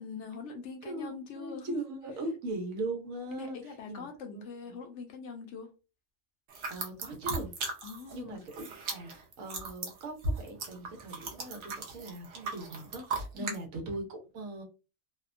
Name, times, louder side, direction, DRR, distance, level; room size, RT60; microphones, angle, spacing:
voice 1, 0.0-1.8 3.4-5.7 7.8-8.4 13.4-13.5, left 5 dB, 70° left, 0.8 m, -43 dB
voice 2, 0.8-4.8 6.7-7.5 8.1-14.6, right 2 dB, 90° right, 1.2 m, -40 dB
sound 1, 6.5-8.2 8.4-13.6, right 3 dB, 65° right, 0.9 m, -37 dB
2.7 x 2.1 x 2.4 m
omnidirectional pair, 1.4 m